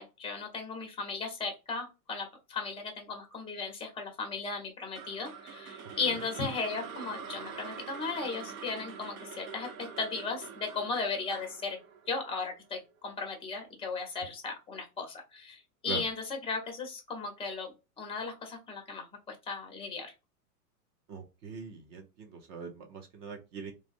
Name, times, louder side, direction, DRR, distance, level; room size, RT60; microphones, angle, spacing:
voice 1, 0.0-11.8 12.1-20.1, left 4 dB, 10° left, 4 dB, 0.8 m, -36 dB
sound 1, 4.9-13.1, right 6 dB, 65° right, 0.8 m, -45 dB
voice 2, 21.1-23.7, right 5 dB, 25° right, 3 dB, 0.4 m, -42 dB
3.2 x 2.1 x 2.4 m, 0.28 s
hypercardioid pair, 105°, 45 cm